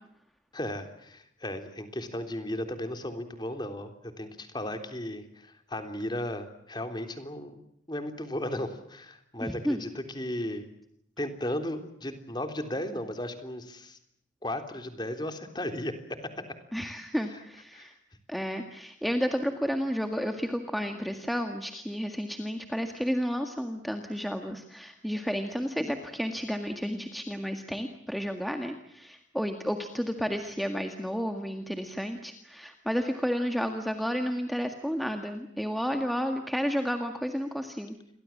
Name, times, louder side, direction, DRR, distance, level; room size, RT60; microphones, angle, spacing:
voice 1, 0.5-3.9 4.2-10.6 11.2-14.0 14.4-15.9 17.3-17.4 17.7-17.9, left 1 dB, 25° left, 7 dB, 3.5 m, -35 dB
voice 2, 9.4-9.8 16.7-17.9 18.3-38.0, equal, ahead, 5 dB, 1.9 m, -31 dB
29.5 x 23.5 x 7.4 m, 0.74 s
head